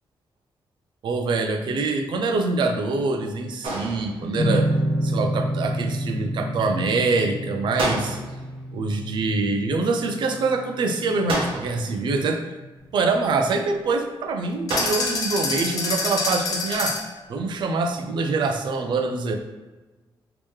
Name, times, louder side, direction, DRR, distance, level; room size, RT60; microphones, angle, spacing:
voice 1, 1.0-4.8 5.0-8.2 8.7-12.5 12.9-17.0 17.3-19.4, right 3 dB, 60° right, 6 dB, 0.4 m, -25 dB
sound 1, 3.6-4.5 7.8-8.6 11.3-12.0 14.7-15.4, right 2 dB, 80° right, 0.8 m, -29 dB
sound 2, 4.4-11.6, equal, 75° left, 1.0 m, -28 dB
sound 3, 14.7-17.2, left 3 dB, 40° left, 0.6 m, -26 dB
3.1 x 2.9 x 3.4 m, 1.2 s
wide cardioid pair, 175°, 9 cm